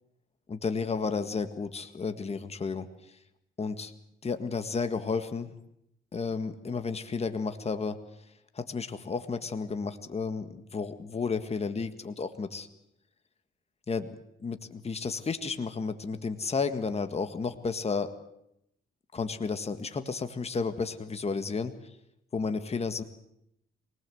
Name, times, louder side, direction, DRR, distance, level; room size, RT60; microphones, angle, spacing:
voice 1, 0.5-2.9 3.6-3.9 4.2-5.5 6.1-8.0 8.5-12.7 13.9-14.1 14.4-18.1 19.1-21.7 22.3-23.0, left 4 dB, 30° left, 9 dB, 1.8 m, -32 dB
24.0 x 19.5 x 7.9 m, 0.80 s
cardioid pair, 90°, 20 cm